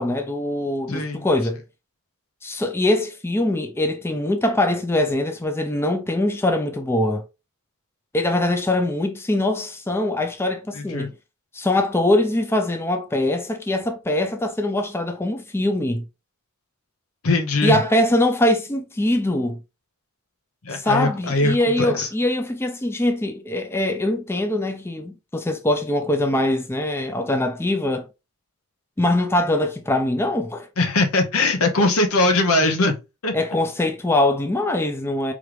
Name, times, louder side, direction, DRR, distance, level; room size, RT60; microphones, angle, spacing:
voice 1, 0.0-1.6 2.4-7.2 8.1-11.1 11.5-16.0 17.6-19.6 20.7-28.1 29.0-30.7 33.3-35.3, left 1 dB, 10° left, 0.3 m, -22 dB
voice 2, 0.9-1.3 10.7-11.1 17.2-17.8 20.6-22.1 30.8-32.9 33.2-33.3, left 2 dB, 75° left, 0.9 m, -21 dB
3.7 x 3.1 x 3.2 m
head